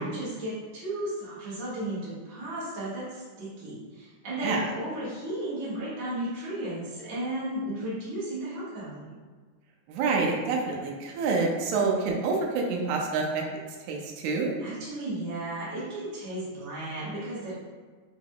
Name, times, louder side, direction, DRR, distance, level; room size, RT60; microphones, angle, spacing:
voice 1, 0.0-9.2 14.6-17.6, right 1 dB, 40° right, -10 dB, 1.4 m, -34 dB
voice 2, 9.9-13.4 13.9-14.5, right 4 dB, 90° right, 0 dB, 2.0 m, -27 dB
5.0 x 3.1 x 2.7 m, 1.5 s
omnidirectional pair, 3.3 m